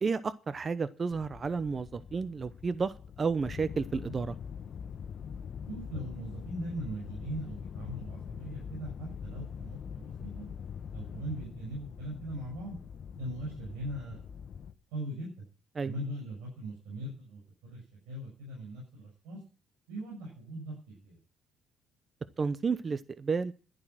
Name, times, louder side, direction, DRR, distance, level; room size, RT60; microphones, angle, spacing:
voice 1, 0.0-2.9 3.2-4.3 15.8-15.9 22.4-23.5, right 5 dB, 35° right, 14 dB, 0.8 m, -31 dB
sound 1, 1.1-14.7, left 7 dB, 55° left, 1.2 m, -43 dB
voice 2, 5.7-10.5 10.9-12.7 13.1-14.2 14.9-15.3 15.8-17.8 18.1-19.4 19.9-21.2, right 1 dB, 90° right, -2 dB, 6.6 m, -40 dB
11.5 x 11.0 x 6.1 m, 0.38 s
supercardioid pair, 75°, 0 cm